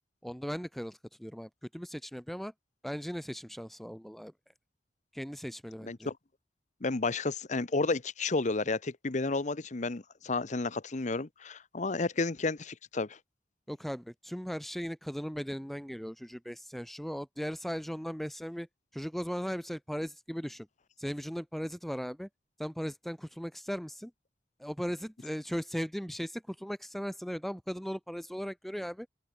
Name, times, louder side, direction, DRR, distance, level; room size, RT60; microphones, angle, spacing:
voice 1, 0.2-2.5 2.8-4.3 5.1-6.1 13.7-18.7 18.9-20.7 21.0-22.3 22.6-24.1 24.6-29.1, equal, ahead, 0.7 m, -37 dB
voice 2, 5.8-6.2 6.8-13.2, left 3 dB, 45° left, 0.9 m, -31 dB
open air
head